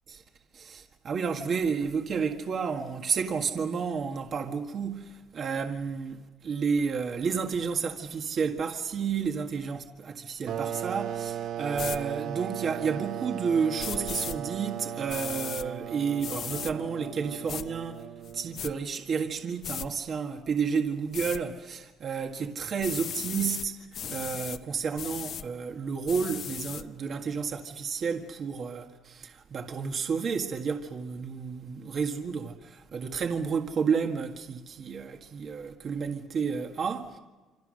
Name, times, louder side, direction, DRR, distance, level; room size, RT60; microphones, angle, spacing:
voice 1, 0.5-18.0 18.3-37.2, right 6 dB, 40° right, 1.7 m, -31 dB
sound 1, 10.5-18.9, right 10 dB, 60° right, 1.0 m, -37 dB
sound 2, 11.7-12.0 13.8-14.4 15.1-15.7 16.2-16.7 17.5-17.6 18.2-18.7 19.6-19.9 21.1-21.4 22.8-23.7 23.9-24.6 25.0-25.4 26.1-26.8, left 9 dB, 50° left, 0.9 m, -36 dB
27.0 x 26.5 x 6.5 m
cardioid pair, 140°, 0 cm